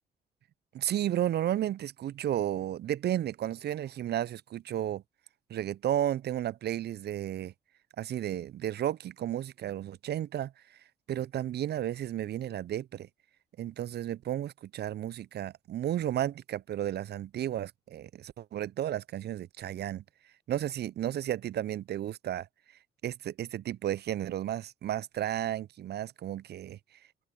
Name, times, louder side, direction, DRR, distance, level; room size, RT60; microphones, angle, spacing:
voice 1, 0.7-5.0 5.5-7.5 8.0-10.8 11.1-13.1 13.6-20.0 20.5-22.5 23.0-26.8, right 11 dB, 55° right, 0.6 m, -33 dB
open air
hypercardioid pair, 45°, 20 cm